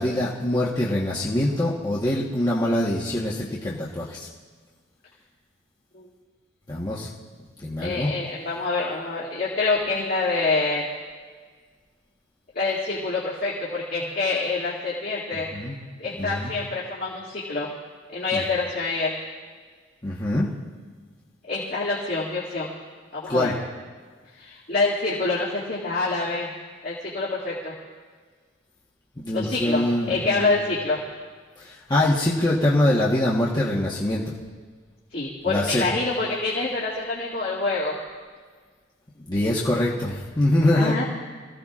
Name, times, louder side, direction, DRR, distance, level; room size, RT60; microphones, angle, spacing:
voice 1, 0.0-4.3 6.7-7.1 7.6-8.1 15.3-15.8 16.2-16.5 18.3-18.4 20.0-20.5 23.3-23.5 29.2-30.6 31.6-34.2 35.5-35.9 39.3-41.0, left 1 dB, 20° left, -6 dB, 1.3 m, -24 dB
voice 2, 7.8-10.9 12.5-15.5 16.0-17.7 18.1-19.2 21.5-22.7 23.1-23.6 24.3-26.5 26.8-27.7 29.3-31.0 35.1-37.9 40.7-41.0, left 3 dB, 50° left, -7 dB, 2.4 m, -26 dB
25.5 x 16.0 x 2.5 m, 1.5 s
head